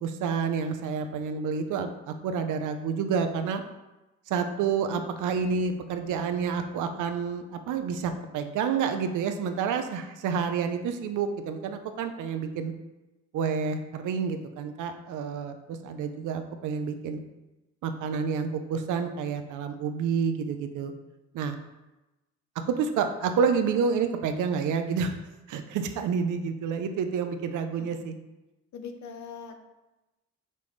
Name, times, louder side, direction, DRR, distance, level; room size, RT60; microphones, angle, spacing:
voice 1, 0.0-3.6 4.3-12.7 13.3-17.2 17.8-20.9 21.3-21.6 22.7-25.2 25.5-28.1, right 6 dB, 80° right, 7 dB, 0.7 m, -29 dB
voice 2, 28.7-29.7, left 6 dB, 70° left, 6 dB, 0.9 m, -42 dB
6.8 x 5.4 x 3.3 m, 1.0 s
cardioid pair, 90°, 30 cm